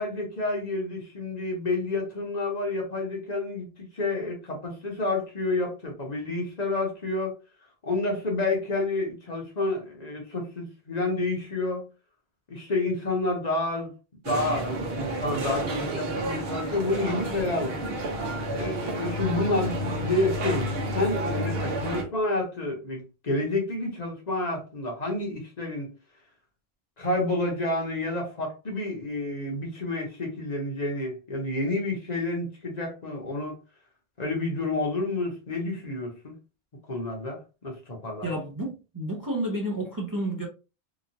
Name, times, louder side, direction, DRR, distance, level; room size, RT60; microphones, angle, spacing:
voice 1, 0.0-7.4 7.8-11.9 12.5-13.9 14.3-17.8 18.5-25.9 27.0-33.6 34.2-36.3 36.9-38.3, left 2 dB, 45° left, 0.9 m, -29 dB
sound 1, 14.2-22.0, right 1 dB, 70° right, 1.0 m, -30 dB
voice 2, 38.2-40.5, right 1 dB, 25° right, 0.5 m, -30 dB
2.9 x 2.4 x 2.5 m
omnidirectional pair, 1.1 m